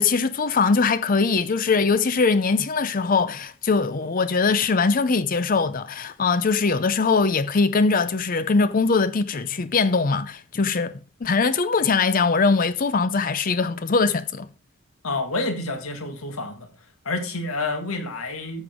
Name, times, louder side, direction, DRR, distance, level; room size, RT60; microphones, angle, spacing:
voice 1, 0.0-10.9 11.2-14.5, left 4 dB, 40° left, 0.5 m, -21 dB
voice 2, 15.0-16.7 17.1-18.6, left 2 dB, 75° left, 1.9 m, -28 dB
13.0 x 7.7 x 3.6 m
head